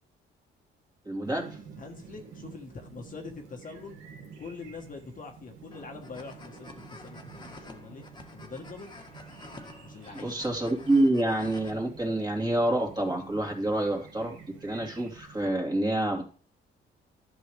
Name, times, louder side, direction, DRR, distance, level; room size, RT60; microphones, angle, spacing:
voice 1, 1.0-1.6 10.2-16.2, right 1 dB, 20° right, 1 dB, 2.7 m, -27 dB
Chirp tweet, 1.2-15.5, right 5 dB, 85° right, 2.0 m, -50 dB
voice 2, 1.8-4.0 4.4-8.0 8.3-8.9 9.8-10.4, left 4 dB, 40° left, 2 dB, 1.4 m, -44 dB
sound 1, 5.7-11.7, left 2 dB, 20° left, 1.6 m, -49 dB
11.0 x 6.1 x 3.4 m, 0.41 s
cardioid pair, 90°, 20 cm